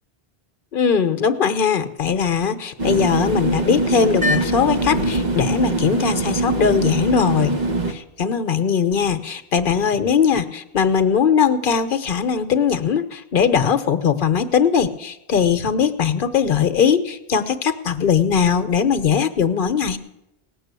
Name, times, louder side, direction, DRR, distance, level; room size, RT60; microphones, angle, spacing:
voice 1, 0.7-7.5 7.9-20.0, left 7 dB, 55° left, 10 dB, 1.0 m, -20 dB
sound 1, 2.8-7.9, right 2 dB, 45° right, 1.1 m, -22 dB
18.0 x 6.4 x 8.2 m, 0.89 s
omnidirectional pair, 1.1 m